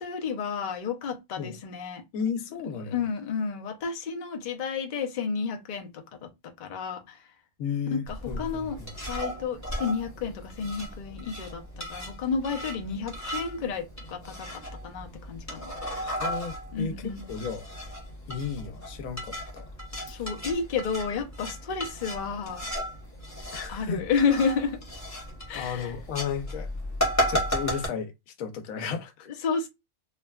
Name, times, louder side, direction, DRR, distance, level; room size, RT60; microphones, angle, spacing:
voice 1, 0.0-2.0 2.9-7.3 7.9-8.8 9.1-15.7 16.7-17.3 20.1-22.7 23.7-24.8 25.5-25.9 29.4-29.7, left 5 dB, 55° left, 0.5 m, -31 dB
voice 2, 2.1-3.0 7.6-8.9 16.0-17.7 18.3-19.7 23.5-24.0 25.5-26.7 27.3-29.3, left 6 dB, 85° left, 1.0 m, -34 dB
sound 1, 8.1-27.9, equal, 15° left, 0.8 m, -35 dB
3.3 x 2.2 x 2.2 m
omnidirectional pair, 1.4 m